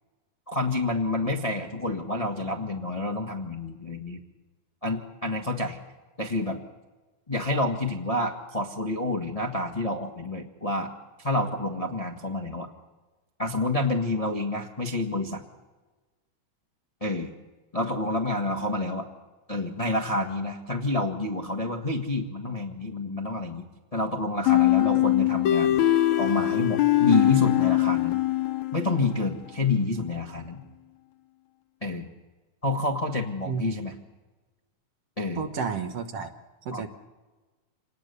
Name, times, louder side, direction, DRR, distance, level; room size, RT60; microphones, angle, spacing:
voice 1, 0.5-4.2 4.8-5.8 6.2-6.6 7.3-10.9 11.2-12.7 13.4-15.4 17.0-17.3 17.7-19.1 19.5-23.6 23.9-25.8 26.2-28.2 28.7-30.6 31.8-32.1 32.6-33.9 35.2-35.4 36.7-36.8, left 2 dB, 55° left, 2 dB, 0.4 m, -28 dB
sound 1, 24.5-29.1, left 15 dB, 70° left, 2.0 m, -22 dB
voice 2, 35.4-36.3 36.7-36.9, right 6 dB, 60° right, 6 dB, 2.0 m, -31 dB
27.0 x 19.5 x 6.9 m, 1.2 s
omnidirectional pair, 3.6 m